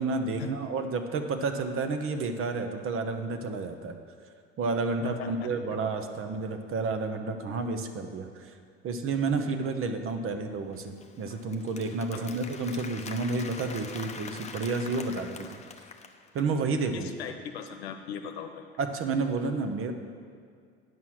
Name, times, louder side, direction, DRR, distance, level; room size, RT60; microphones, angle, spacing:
voice 1, 0.0-4.0 4.6-8.5 8.8-15.5 16.3-17.1 18.8-19.9, right 3 dB, 45° right, 7 dB, 1.0 m, -30 dB
voice 2, 5.0-5.5 12.1-12.2 16.9-18.7, left 7 dB, 85° left, 6 dB, 0.9 m, -39 dB
Applause, 10.7-16.5, left 5 dB, 20° left, 0.7 m, -44 dB
9.4 x 5.6 x 6.3 m, 2.2 s
hypercardioid pair, 80°, 31 cm